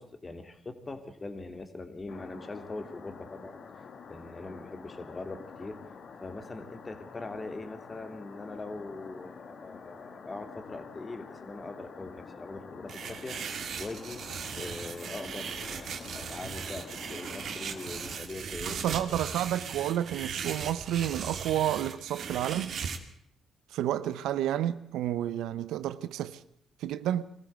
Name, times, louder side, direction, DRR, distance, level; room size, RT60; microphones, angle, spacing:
voice 1, 0.0-3.6 4.1-5.8 6.2-14.2 14.6-19.1, left 2 dB, 30° left, 2.9 m, -42 dB
sound 1, 2.1-18.2, left 5 dB, 60° left, 2.1 m, -47 dB
sound 2, 12.9-23.0, right 6 dB, 65° right, 2.2 m, -38 dB
voice 2, 18.7-22.8 23.7-26.4 26.8-27.2, right 12 dB, 85° right, 0.8 m, -30 dB
22.0 x 14.5 x 8.1 m
supercardioid pair, 65°, 0 cm